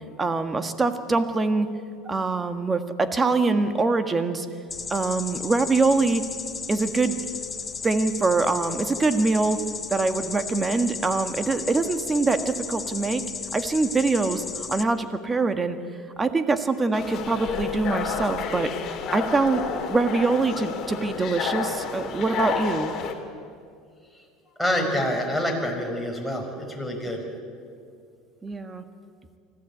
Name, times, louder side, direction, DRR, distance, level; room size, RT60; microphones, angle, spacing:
voice 1, 0.2-1.7 2.0-4.4 4.9-6.2 6.7-7.2 7.8-9.6 9.9-13.2 13.5-15.8 16.2-18.7 19.1-19.6 19.9-22.9 28.4-28.8, right 3 dB, 20° right, 9 dB, 1.7 m, -24 dB
sound 1, 4.7-14.8, left 5 dB, 25° left, 1.1 m, -34 dB
sound 2, 16.9-23.1, left 6 dB, 45° left, 2.9 m, -30 dB
voice 2, 24.6-27.2, left 1 dB, ahead, 0 dB, 5.0 m, -27 dB
24.5 x 15.0 x 8.5 m, 2.3 s
supercardioid pair, 105°, 0 cm